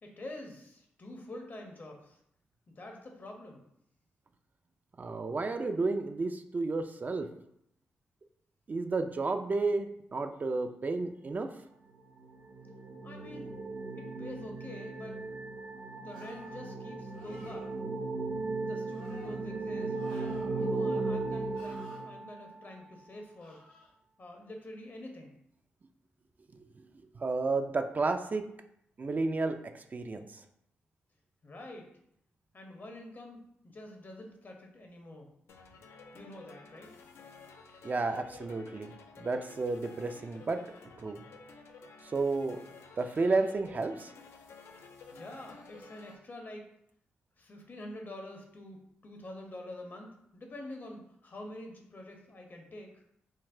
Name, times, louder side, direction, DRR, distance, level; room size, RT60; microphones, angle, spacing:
voice 1, 0.0-2.2 2.7-3.6 13.0-13.5 14.0-15.2 16.0-17.6 18.6-23.6 24.2-25.3 31.4-31.9 32.5-33.4 33.6-35.3 36.1-36.9 45.1-46.6 47.4-52.9, left 1 dB, 45° left, 2 dB, 0.7 m, -46 dB
voice 2, 5.0-7.3 8.7-11.5 27.2-28.4 29.0-30.4 37.8-40.6 41.0-41.2 42.0-42.6 43.0-44.1, right 3 dB, 40° right, 6 dB, 0.3 m, -32 dB
sound 1, 12.0-22.7, right 3 dB, 75° right, 0.8 m, -37 dB
sound 2, 16.1-16.6 17.1-17.7 18.9-19.4 19.9-20.8 21.5-22.0 23.4-23.9, left 1 dB, 85° left, 1.0 m, -55 dB
sound 3, 35.5-46.2, left 4 dB, 70° left, 0.4 m, -52 dB
3.8 x 2.1 x 2.6 m, 0.74 s
supercardioid pair, 45°, 5 cm